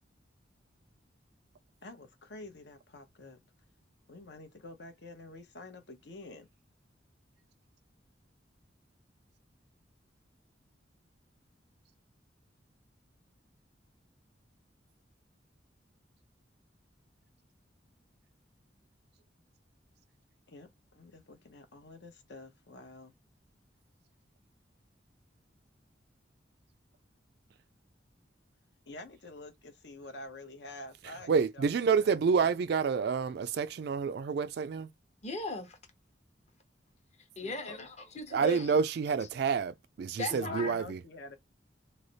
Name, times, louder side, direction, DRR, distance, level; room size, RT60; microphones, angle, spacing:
voice 1, 1.8-3.4 4.1-6.5 20.5-23.1 28.9-31.7 31.9-32.2 37.4-37.9 40.3-41.4, left 2 dB, 65° left, 0.8 m, -48 dB
voice 2, 31.3-34.9 38.3-41.0, right 5 dB, 60° right, 0.3 m, -28 dB
voice 3, 35.2-35.8 37.2-38.8 40.2-40.8, left 1 dB, 35° left, 0.9 m, -38 dB
3.2 x 2.1 x 3.9 m
head